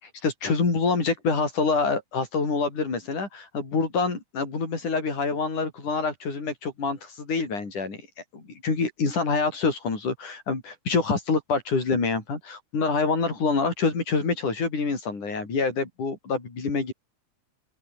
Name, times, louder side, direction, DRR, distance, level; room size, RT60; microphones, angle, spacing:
voice 1, 0.0-8.1 8.3-16.9, left 4 dB, 85° left, 7.7 m, -26 dB
open air
omnidirectional pair, 3.5 m